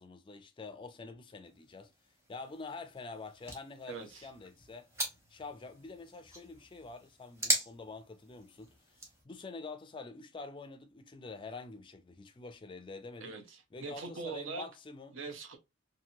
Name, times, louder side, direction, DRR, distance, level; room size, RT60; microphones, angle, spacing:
voice 1, 0.0-1.9 2.3-4.9 5.3-13.4 13.7-15.2, left 3 dB, 25° left, 0.4 m, -47 dB
sound 1, 1.4-9.2, right 1 dB, 15° right, 0.9 m, -40 dB
voice 2, 3.9-4.3 13.2-14.7 15.1-15.6, right 4 dB, 75° right, 0.7 m, -42 dB
2.9 x 2.6 x 2.6 m
head